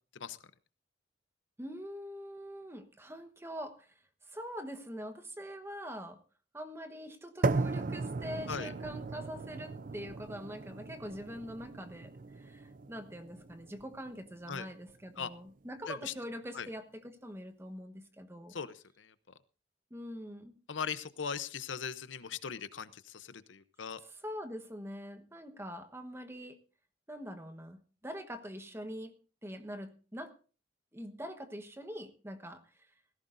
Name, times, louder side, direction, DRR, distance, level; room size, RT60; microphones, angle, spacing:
voice 1, 1.6-3.9 4.2-6.2 6.5-18.6 19.9-20.5 24.0-26.6 27.1-29.1 29.4-30.3 30.9-32.9, equal, 15° right, 8 dB, 1.2 m, -44 dB
sound 1, 7.4-15.5, right 3 dB, 45° right, 0.5 m, -37 dB
voice 2, 18.5-19.1 20.7-24.0, left 6 dB, 75° left, 14 dB, 0.7 m, -39 dB
17.5 x 15.5 x 2.6 m, 0.36 s
head